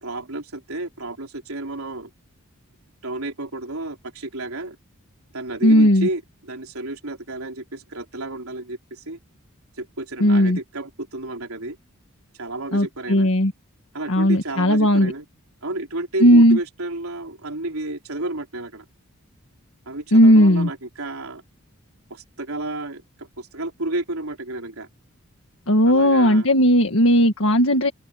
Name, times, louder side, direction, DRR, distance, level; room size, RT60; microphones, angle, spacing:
voice 1, 0.0-2.1 3.0-4.8 5.3-9.2 9.8-11.8 12.3-13.3 13.9-15.2 15.6-18.9 19.9-21.4 22.1-24.9 25.9-26.5, right 2 dB, 75° right, 3.8 m, -31 dB
voice 2, 5.6-6.1 10.2-10.6 12.7-13.5 14.1-15.1 16.2-16.6 20.1-20.7 25.7-27.9, equal, 65° left, 1.9 m, -16 dB
open air
head